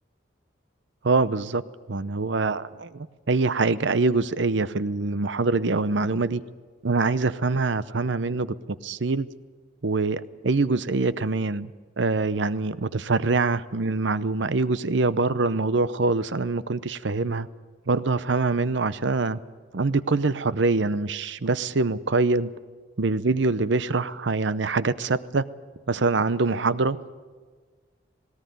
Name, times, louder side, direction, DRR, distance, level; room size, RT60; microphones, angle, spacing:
voice 1, 1.0-1.6 1.9-6.4 6.8-8.5 8.8-9.3 9.8-11.7 12.0-17.5 17.9-19.4 19.7-22.5 23.0-25.5 25.9-27.0, right 3 dB, 70° right, 15 dB, 0.7 m, -24 dB
19.0 x 18.0 x 9.4 m, 1.5 s
head